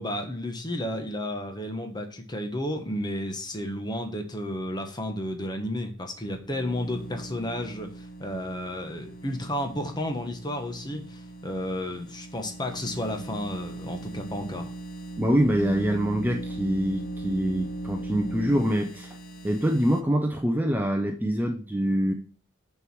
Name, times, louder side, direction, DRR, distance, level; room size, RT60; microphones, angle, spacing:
voice 1, 0.0-14.7, left 1 dB, 20° left, 4 dB, 1.2 m, -32 dB
sound 1, 6.2-20.0, right 2 dB, 50° left, 0.9 m, -38 dB
voice 2, 15.2-19.2 19.4-22.1, equal, 10° right, 3 dB, 0.7 m, -25 dB
6.6 x 4.7 x 6.0 m, 0.40 s
head